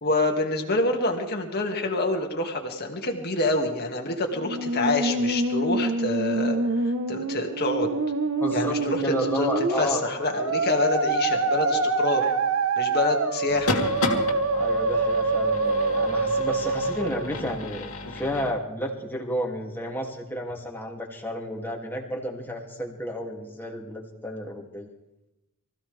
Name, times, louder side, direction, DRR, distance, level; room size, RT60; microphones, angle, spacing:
voice 1, 0.0-7.9 8.5-9.5 9.8-12.3 12.8-13.8, left 2 dB, 45° left, 2 dB, 2.3 m, -27 dB
Musical instrument, 4.3-17.4, right 3 dB, 65° right, 1.2 m, -26 dB
voice 2, 8.4-10.0 14.5-24.9, equal, 10° left, -1 dB, 2.7 m, -32 dB
sound 1, 13.5-18.5, left 2 dB, 70° left, 2.5 m, -32 dB
24.5 x 16.0 x 3.5 m, 0.94 s
head